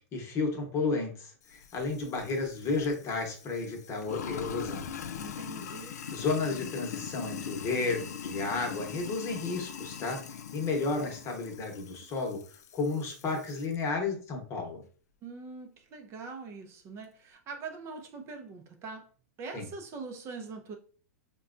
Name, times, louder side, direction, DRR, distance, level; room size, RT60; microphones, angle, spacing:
voice 1, 0.1-4.9 5.9-12.4 12.7-14.8 19.5-19.6, left 3 dB, 30° left, 1.0 m, -32 dB
Sink (filling or washing), 1.5-13.8, left 8 dB, 80° left, 0.4 m, -42 dB
voice 2, 5.2-6.0 15.2-19.1 19.4-20.8, right 4 dB, 30° right, 0.5 m, -43 dB
4.2 x 2.2 x 2.5 m
hypercardioid pair, 125°, 9 cm